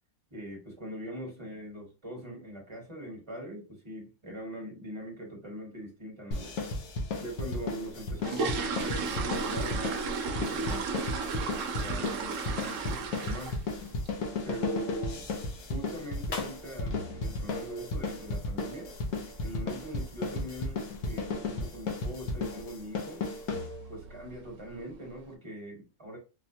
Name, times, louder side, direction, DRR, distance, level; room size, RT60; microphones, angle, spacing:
voice 1, 0.3-6.5 7.2-9.8 10.5-10.9 11.7-13.5 14.4-15.3 15.7-18.9 19.4-23.2 23.9-26.2, right 1 dB, 20° right, 1.2 m, -41 dB
sound 1, 6.3-24.1, left 3 dB, 80° left, 1.3 m, -34 dB
sound 2, 7.9-13.8 14.1-14.3 14.7-14.8 15.1-15.3 15.7-15.9 16.2-16.3 16.8-16.9 17.2-17.4 17.9-18.2 18.5-18.6 19.0-19.2 19.5-19.6 20.0-20.1 20.7-21.0 21.4-21.7 22.0-22.1 22.6-22.7 23.4-23.6 24.0-24.5 24.9-25.0, right 4 dB, 70° right, 0.8 m, -34 dB
sound 3, 16.2-18.6, left 3 dB, 50° left, 0.5 m, -49 dB
4.1 x 2.2 x 2.7 m
omnidirectional pair, 1.6 m